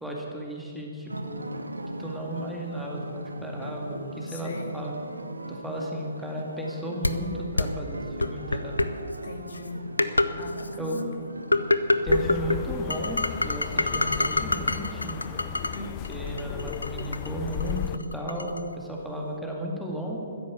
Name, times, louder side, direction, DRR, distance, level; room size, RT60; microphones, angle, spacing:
voice 1, 0.0-1.5 2.0-4.9 5.5-8.7 10.8-11.0 12.0-15.2 16.1-20.2, right 1 dB, ahead, -2 dB, 2.0 m, -34 dB
sound 1, 1.0-19.4, right 1 dB, 80° right, 1.2 m, -41 dB
voice 2, 4.3-4.8 9.2-10.0 10.4-11.4 15.7-16.0, left 2 dB, 50° left, 4 dB, 2.0 m, -39 dB
sound 2, 7.0-7.1 7.6-7.7 8.2-8.9 9.5-9.6 10.0-10.3 10.6-11.0 11.5-12.6 12.9-15.8 16.0-18.6, left 2 dB, 80° left, 0.8 m, -25 dB
sound 3, 12.1-18.0, left 12 dB, 30° left, 0.5 m, -35 dB
13.5 x 10.5 x 8.6 m, 2.5 s
figure-of-eight pair, 125°, 0 cm